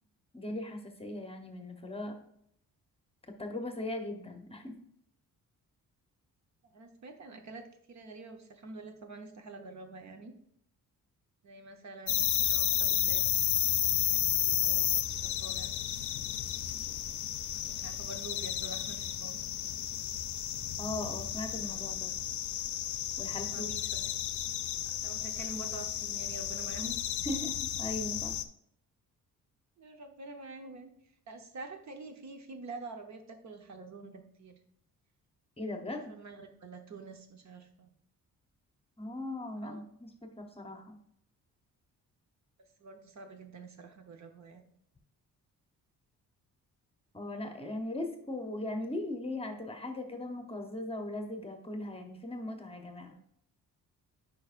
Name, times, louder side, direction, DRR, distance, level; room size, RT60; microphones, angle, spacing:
voice 1, 0.3-2.1 3.4-4.7 20.8-22.1 23.2-23.7 27.2-28.4 35.6-36.1 39.0-41.0 47.1-53.2, left 1 dB, 15° left, 4 dB, 0.9 m, -39 dB
voice 2, 6.7-10.3 11.4-13.2 14.1-15.7 17.6-19.4 23.3-24.1 24.8-27.1 29.8-30.9 31.3-34.6 35.9-37.9 39.6-39.8 42.8-44.6, right 3 dB, 55° right, 6 dB, 0.9 m, -47 dB
sound 1, 12.1-28.4, left 11 dB, 60° left, 0.5 m, -32 dB
9.3 x 5.0 x 2.5 m, 0.71 s
cardioid pair, 110°, 34 cm